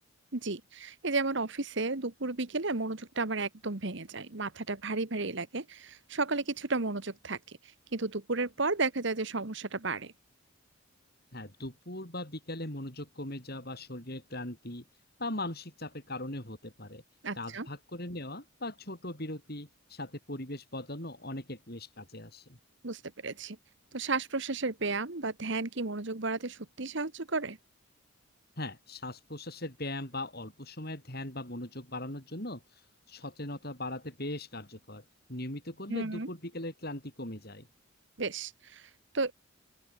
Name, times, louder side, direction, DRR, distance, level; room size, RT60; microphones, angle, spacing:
voice 1, 0.3-7.6 7.9-10.1 17.2-17.7 22.8-23.6 23.9-27.6 35.9-36.3 38.2-39.3, right 3 dB, 55° right, 1.3 m, -33 dB
voice 2, 11.3-14.9 15.2-17.0 17.3-22.6 28.6-32.6 33.1-35.0 35.3-37.7, left 1 dB, 45° left, 6.4 m, -39 dB
open air
head